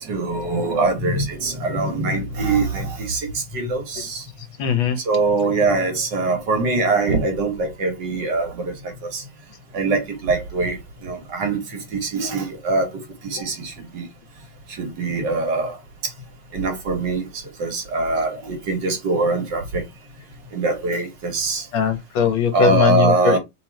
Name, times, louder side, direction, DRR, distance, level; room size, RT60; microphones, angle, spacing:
voice 1, 0.0-4.2 5.0-9.2 9.7-14.1 14.7-15.8 16.5-19.8 20.5-21.7 22.5-23.4, right 3 dB, 60° right, 1.8 m, -23 dB
voice 2, 4.6-5.0 5.5-5.6 13.4-13.5 21.7-23.4, left 7 dB, 75° left, 1.8 m, -20 dB
3.9 x 3.1 x 4.5 m
omnidirectional pair, 2.3 m